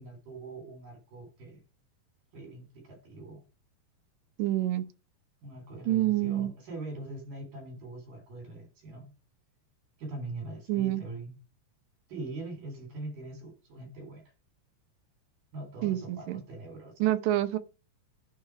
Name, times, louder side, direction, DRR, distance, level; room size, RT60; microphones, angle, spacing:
voice 1, 0.0-1.6 2.3-3.4 5.4-9.1 10.0-11.3 12.1-14.3 15.5-16.9, right 2 dB, 75° right, 5.1 m, -42 dB
voice 2, 4.4-4.9 5.9-6.5 10.7-11.0 15.8-16.4 17.0-17.6, right 14 dB, 90° right, 2.5 m, -27 dB
11.0 x 4.2 x 4.7 m
omnidirectional pair, 3.8 m